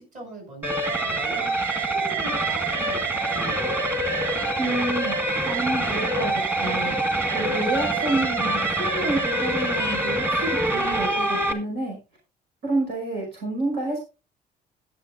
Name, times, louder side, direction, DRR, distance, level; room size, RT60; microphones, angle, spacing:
voice 1, 0.0-1.5 1.8-3.8, right 1 dB, 45° right, 0 dB, 8.0 m, -41 dB
sound 1, 0.6-11.5, right 2 dB, 10° right, 1.6 m, -25 dB
voice 2, 4.6-7.0 7.3-12.0 12.6-14.0, right 2 dB, 80° right, -1 dB, 5.4 m, -29 dB
21.0 x 7.2 x 2.5 m, 0.30 s
cardioid pair, 110°, 17 cm